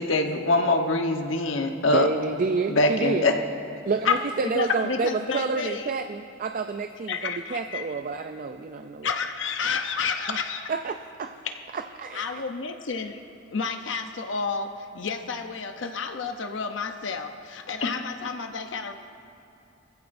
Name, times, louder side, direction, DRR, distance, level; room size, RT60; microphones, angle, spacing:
voice 1, 0.0-2.1 2.7-3.3 4.1-4.2 17.8-17.9, left 2 dB, 80° left, 3 dB, 1.1 m, -23 dB
voice 2, 1.9-3.3 3.9-9.1 10.3-10.4 10.7-11.3 11.7-12.4, right 4 dB, 45° right, 7 dB, 0.4 m, -29 dB
voice 3, 4.4-5.9 7.1-7.9 9.0-10.6 12.1-13.2 13.5-18.9, left 5 dB, 65° left, 6 dB, 0.7 m, -31 dB
22.5 x 15.0 x 2.6 m, 2.9 s
head